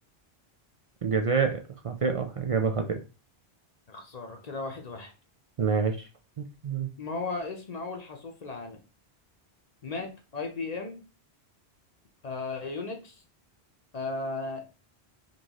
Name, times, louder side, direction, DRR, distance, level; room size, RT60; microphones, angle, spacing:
voice 1, 1.0-1.6 1.8-3.0 5.6-6.1 6.4-6.9, right 5 dB, 55° right, 4 dB, 0.3 m, -27 dB
voice 2, 3.9-5.1 7.0-8.8 9.8-11.0 12.2-13.2 13.9-14.7, left 3 dB, 45° left, 3 dB, 0.7 m, -36 dB
4.4 x 3.0 x 2.9 m, 0.32 s
omnidirectional pair, 1.1 m